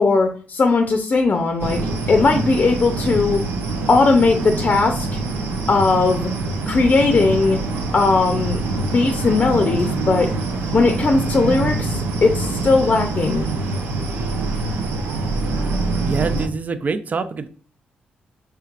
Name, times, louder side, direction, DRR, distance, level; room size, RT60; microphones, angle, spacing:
voice 1, 0.0-1.8 2.1-3.4 3.9-5.1 5.7-6.3 6.7-7.6 7.9-10.3 10.7-13.5, left 3 dB, 45° left, 5 dB, 0.5 m, -18 dB
sound 1, 1.6-16.5, right 3 dB, 90° right, 0.6 m, -25 dB
voice 2, 16.1-17.5, right 4 dB, 45° right, 10 dB, 0.5 m, -25 dB
4.5 x 3.3 x 2.4 m, 0.43 s
supercardioid pair, 60°, 4 cm